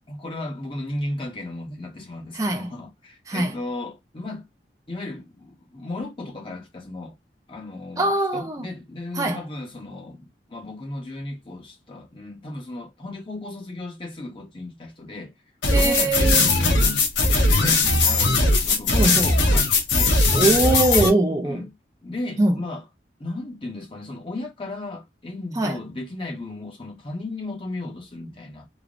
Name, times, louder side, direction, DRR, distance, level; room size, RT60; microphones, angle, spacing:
voice 1, 0.1-4.5 4.9-7.2 7.5-15.3 15.7-20.2 21.4-21.7 22.0-22.9 23.2-28.7, left 2 dB, 30° left, 0.7 m, -35 dB
voice 2, 2.3-2.7 3.3-3.5 8.0-8.7 9.2-9.4 15.7-16.5 18.9-19.4 20.3-21.6 22.4-22.6 25.6-25.8, right 2 dB, 20° right, 0.4 m, -22 dB
sound 1, 15.6-21.1, left 2 dB, 90° left, 0.8 m, -19 dB
3.2 x 2.0 x 2.4 m
head